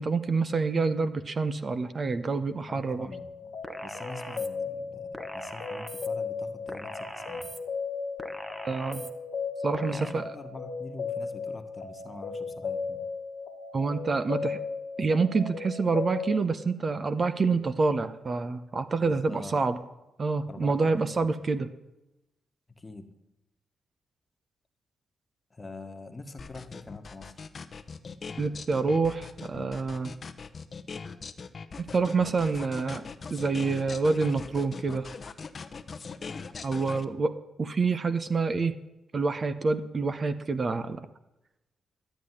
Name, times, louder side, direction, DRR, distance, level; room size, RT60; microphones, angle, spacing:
voice 1, 0.0-3.1 8.7-9.0 9.6-10.2 13.7-14.6 15.0-19.8 20.2-21.7 28.4-30.1 31.9-33.0 33.3-35.1 36.6-38.7 39.1-41.1, right 4 dB, 35° right, 10 dB, 0.8 m, -27 dB
voice 2, 2.7-7.5 9.9-13.1 19.0-19.7 20.4-21.3 22.7-23.1 25.5-27.3 37.1-37.2, left 3 dB, 25° left, 6 dB, 1.5 m, -44 dB
sound 1, 3.1-16.4, left 5 dB, 70° left, 1.4 m, -36 dB
sound 2, 3.6-4.5 5.1-6.1 6.7-7.6 8.2-9.1 9.7-10.1, equal, 10° right, 1.1 m, -41 dB
sound 3, 26.4-37.0, left 5 dB, 40° left, 0.9 m, -41 dB
12.5 x 8.5 x 9.9 m, 0.94 s
cardioid pair, 110°, 0 cm